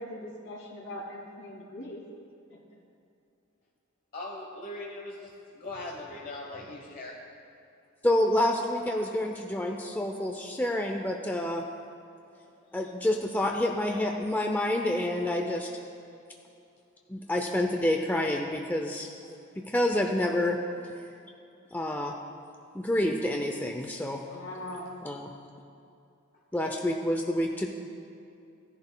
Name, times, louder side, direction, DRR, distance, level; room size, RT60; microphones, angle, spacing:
voice 1, 0.0-2.0 2.5-2.6 24.3-24.9, left 1 dB, 70° left, -3 dB, 2.5 m, -41 dB
voice 2, 4.1-7.2, left 2 dB, 45° left, -2 dB, 1.0 m, -40 dB
voice 3, 8.0-11.6 12.7-15.7 17.1-19.1 19.6-20.6 21.7-22.1 22.7-24.2 25.0-25.3 26.5-27.7, left 1 dB, 10° left, 2 dB, 0.4 m, -28 dB
16.0 x 10.5 x 2.2 m, 2.6 s
head